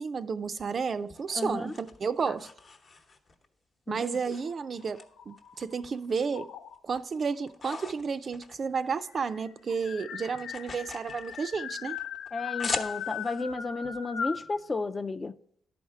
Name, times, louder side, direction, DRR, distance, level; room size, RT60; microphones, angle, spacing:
voice 1, 0.0-2.5 3.9-5.0 5.3-6.5 6.8-12.0, right 5 dB, 45° right, 0.4 m, -32 dB
sound 1, 0.6-3.5 3.9-5.0 5.4-6.4 6.7-9.3 9.6-13.4, left 3 dB, 50° left, 0.9 m, -41 dB
voice 2, 1.3-1.8 2.3-2.4 3.9-4.3 12.3-15.3, left 3 dB, 25° left, 0.4 m, -33 dB
sound 2, 4.4-5.8 6.3-7.0 8.0-8.1 8.3-8.4 8.7-14.5, left 8 dB, 90° left, 0.5 m, -39 dB
11.0 x 4.3 x 4.6 m
cardioid pair, 85°, 0 cm